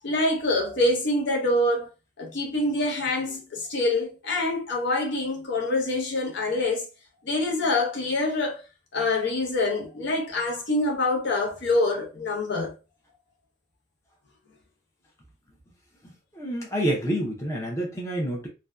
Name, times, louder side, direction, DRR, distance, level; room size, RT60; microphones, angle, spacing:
voice 1, 0.0-1.9 2.2-6.9 7.3-8.6 8.9-12.7, left 2 dB, 60° left, 0.7 m, -25 dB
voice 2, 16.0-18.5, right 1 dB, 15° left, 0.6 m, -28 dB
2.6 x 2.1 x 2.3 m
head